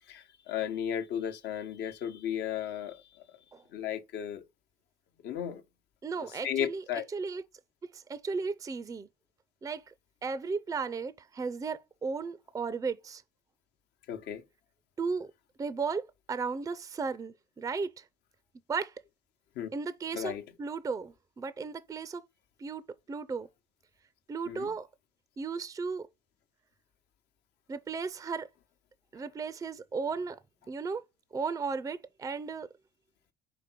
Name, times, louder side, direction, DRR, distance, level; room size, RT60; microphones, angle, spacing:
voice 1, 0.1-3.2 3.7-4.4 5.2-5.6 6.4-7.0 14.1-14.4 19.6-19.7 20.1-20.4 24.5-24.7, left 9 dB, 80° left, 0.9 m, -34 dB
voice 2, 6.0-6.8 7.1-7.4 7.9-9.1 9.6-9.9 10.2-13.2 15.0-15.3 15.6-18.1 18.7-19.0 19.7-22.2 22.6-22.8 23.1-23.5 24.3-24.9 25.4-26.1 27.7-28.5 29.1-30.4 30.7-31.0 31.3-32.7, right 4 dB, 20° right, 0.4 m, -35 dB
5.0 x 3.9 x 5.8 m
cardioid pair, 110°, 17 cm